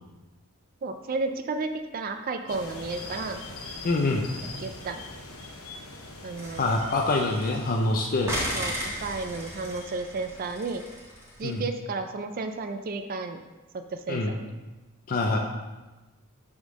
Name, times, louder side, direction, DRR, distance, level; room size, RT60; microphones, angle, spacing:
voice 1, 0.8-3.4 4.6-5.0 6.2-6.6 8.5-10.8 11.4-13.4 13.9-14.5, right 3 dB, 40° right, 7 dB, 0.4 m, -32 dB
sound 1, 2.5-10.5, left 3 dB, 65° left, 0.9 m, -43 dB
voice 2, 3.8-4.3 6.6-8.4 11.4-11.6 14.1-14.4 15.1-15.4, left 2 dB, 40° left, 1 dB, 0.5 m, -25 dB
sound 2, 6.4-7.8 8.3-11.5, equal, 10° right, 1.7 m, -36 dB
6.4 x 3.6 x 6.2 m, 1.1 s
head